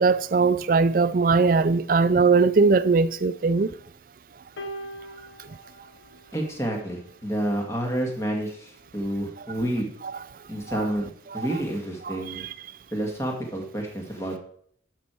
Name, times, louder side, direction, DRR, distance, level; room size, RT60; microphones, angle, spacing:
voice 1, 0.0-3.7, right 4 dB, 50° right, 0.4 m, -20 dB
sound 1, 4.6-7.0 8.1-8.2, right 1 dB, 85° left, 1.1 m, -41 dB
voice 2, 6.3-9.9 10.5-12.4 12.9-14.4, right 1 dB, 15° left, 1.7 m, -29 dB
11.5 x 6.4 x 4.4 m
head